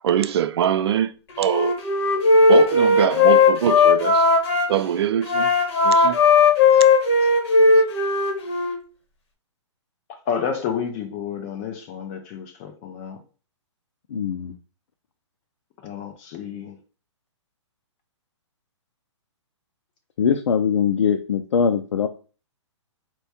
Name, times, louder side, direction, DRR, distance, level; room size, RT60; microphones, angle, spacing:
voice 1, 0.0-1.1 1.4-1.8 2.5-4.3 4.7-5.5 5.8-6.2 6.7-6.8, right 10 dB, 55° right, 0.5 m, -23 dB
Wind instrument woodwind instrument, 1.4-4.7 5.2-8.8, left 3 dB, 55° left, 1.4 m, -17 dB
voice 2, 10.3-13.2 15.8-16.8, left 7 dB, 30° left, 0.6 m, -30 dB
voice 3, 14.1-14.6 20.2-22.1, left 7 dB, 70° left, 0.5 m, -21 dB
4.4 x 2.2 x 4.2 m
hypercardioid pair, 145°, 16 cm